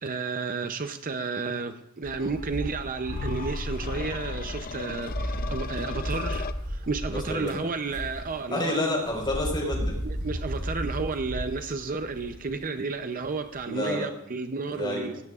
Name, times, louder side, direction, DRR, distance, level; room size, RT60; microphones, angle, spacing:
voice 1, 0.0-8.8 10.0-15.2, right 4 dB, 40° right, 8 dB, 0.6 m, -32 dB
sound 1, 2.0-13.6, equal, 85° right, 5.4 m, -35 dB
sound 2, 3.0-6.5, left 4 dB, 40° left, 0.5 m, -34 dB
voice 2, 7.3-7.6 8.5-9.9 13.7-14.1 14.7-15.2, left 1 dB, 20° left, 0 dB, 4.4 m, -29 dB
17.5 x 17.0 x 2.4 m, 0.79 s
head